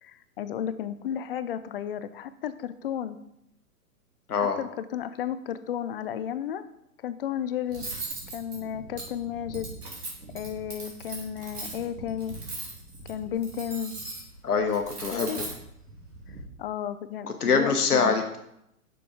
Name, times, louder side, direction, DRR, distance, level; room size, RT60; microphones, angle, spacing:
voice 1, 0.0-3.2 4.4-6.6 7.0-7.9 8.3-9.7 10.3-12.4 13.1-13.9 15.1-15.4 16.6-18.2, left 9 dB, 40° left, 13 dB, 0.5 m, -33 dB
Cutlery silverware, 7.7-16.4, right 2 dB, 90° right, 2.7 m, -39 dB
voice 2, 14.4-15.4 17.4-18.4, left 5 dB, 80° left, 5 dB, 1.1 m, -24 dB
6.2 x 5.9 x 5.0 m, 0.79 s
figure-of-eight pair, 120°, 45 cm